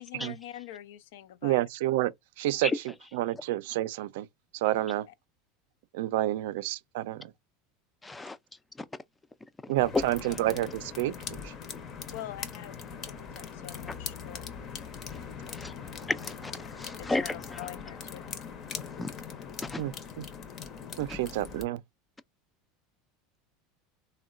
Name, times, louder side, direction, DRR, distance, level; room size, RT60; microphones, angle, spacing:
voice 1, 0.0-1.6 12.1-14.5 16.8-18.3, left 13 dB, 80° left, 0.4 m, -45 dB
voice 2, 1.4-4.3 4.5-5.1 5.9-7.3 9.7-11.1 11.4-11.5 19.8-20.2 21.0-21.8, right 15 dB, 75° right, 0.4 m, -29 dB
voice 3, 8.0-8.4 8.8-8.9 9.9-10.0 15.1-15.2 15.5-16.5 16.8-17.6 19.0-19.1 19.6-19.8, left 2 dB, 10° left, 0.3 m, -32 dB
sound 1, 9.8-21.6, left 6 dB, 40° left, 0.7 m, -41 dB
3.6 x 2.1 x 2.4 m
supercardioid pair, 125°, 0 cm